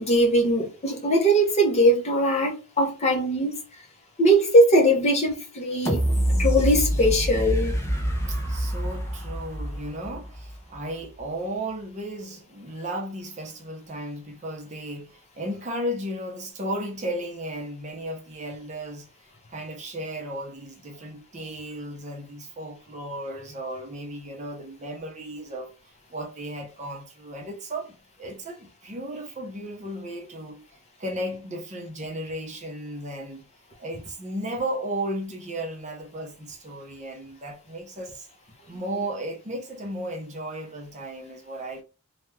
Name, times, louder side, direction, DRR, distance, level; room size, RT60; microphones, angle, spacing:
voice 1, 0.0-3.6 4.2-6.0 6.4-7.8, equal, 30° left, 0.9 m, -20 dB
sound 1, 5.8-10.7 11.2-11.3, equal, 10° left, 0.6 m, -26 dB
voice 2, 8.3-19.1 19.5-33.5 33.8-38.3 38.7-41.8, right 1 dB, 35° right, 0.7 m, -35 dB
3.3 x 2.3 x 3.2 m
head